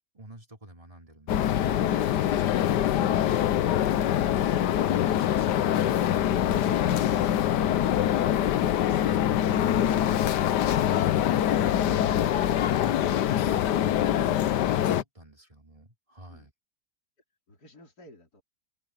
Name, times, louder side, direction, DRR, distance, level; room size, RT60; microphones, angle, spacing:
voice 1, 0.1-2.9 3.2-10.9 11.6-12.3 12.7-14.6 14.8-16.5, right 1 dB, 20° right, 3.6 m, -48 dB
sound 1, 1.3-15.0, left 11 dB, 80° left, 1.4 m, -24 dB
voice 2, 17.5-18.4, left 1 dB, 60° left, 4.7 m, -53 dB
omnidirectional pair, 1.8 m